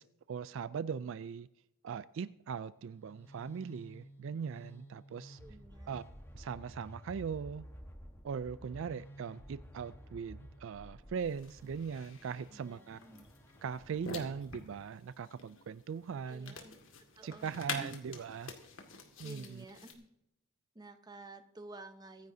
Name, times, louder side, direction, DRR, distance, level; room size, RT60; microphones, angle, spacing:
voice 1, 0.0-1.5 1.8-5.4 5.9-6.0 6.3-7.7 8.2-13.0 13.6-16.6 17.2-18.5 19.2-19.6, right 6 dB, 60° right, 0.3 m, -40 dB
sound 1, 2.8-14.6, equal, 10° left, 1.2 m, -53 dB
voice 2, 5.4-5.9 12.5-13.3 16.3-16.8 17.2-18.0 19.2-20.1 20.7-22.3, right 2 dB, 20° right, 0.8 m, -51 dB
sound 2, 11.2-19.9, left 5 dB, 60° left, 2.0 m, -48 dB
23.5 x 10.5 x 2.7 m
head